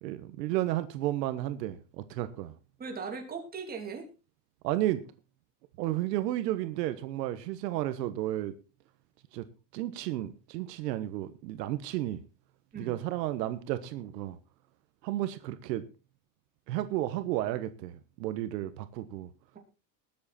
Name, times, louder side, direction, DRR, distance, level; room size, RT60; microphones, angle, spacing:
voice 1, 0.0-2.5 4.6-5.0 5.8-8.5 9.3-9.4 9.7-12.2 12.8-14.4 15.0-15.8 16.7-19.3, right 14 dB, 80° right, 1.4 m, -32 dB
voice 2, 2.8-4.1 12.7-13.0, right 5 dB, 20° right, 3.1 m, -39 dB
20.5 x 7.8 x 4.2 m
supercardioid pair, 150°, 49 cm